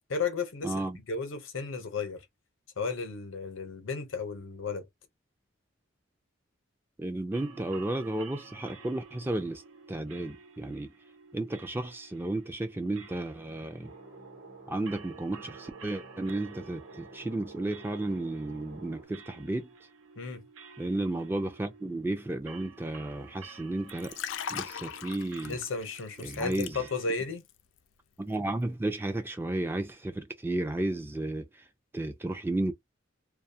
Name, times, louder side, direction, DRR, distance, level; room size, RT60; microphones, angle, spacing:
voice 1, 0.1-2.2 2.8-4.9 20.2-20.4 25.4-27.4, left 4 dB, 90° left, 0.7 m, -34 dB
voice 2, 0.6-1.0 7.0-9.6 9.9-10.9 11.3-13.9 14.7-19.7 20.8-24.1 24.5-25.6 26.2-26.8 28.2-31.5 31.9-32.7, right 2 dB, 10° right, 0.3 m, -33 dB
sound 1, 7.3-27.1, right 5 dB, 85° right, 0.7 m, -52 dB
sound 2, 13.8-19.1, right 2 dB, 55° right, 0.9 m, -50 dB
Liquid, 23.9-27.2 27.5-27.8, left 8 dB, 70° left, 0.3 m, -39 dB
2.3 x 2.2 x 2.7 m
head